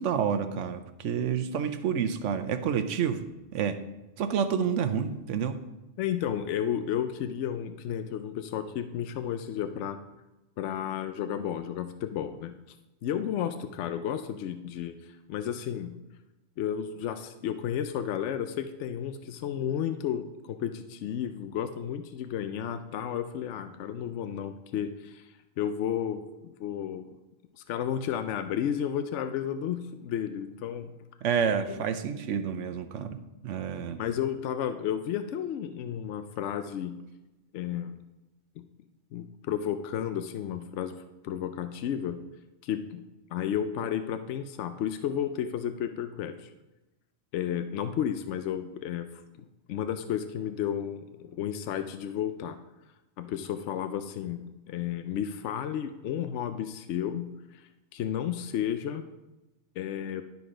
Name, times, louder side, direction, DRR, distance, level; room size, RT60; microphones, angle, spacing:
voice 1, 0.0-3.3 3.5-3.8 4.2-5.6 31.2-33.2 33.4-34.0, right 7 dB, 90° right, 9 dB, 1.0 m, -29 dB
voice 2, 6.0-10.0 10.6-12.5 13.0-14.9 15.3-16.0 16.6-27.1 27.6-30.9 31.7-31.8 34.0-37.0 37.5-38.0 38.6-38.7 39.1-41.0 41.2-42.2 42.6-43.0 43.3-46.5 47.3-49.1 49.4-52.6 53.2-57.6 57.9-59.0 59.8-60.2, left 9 dB, 80° left, 9 dB, 0.9 m, -32 dB
11.5 x 4.1 x 5.0 m, 1.0 s
omnidirectional pair, 1.2 m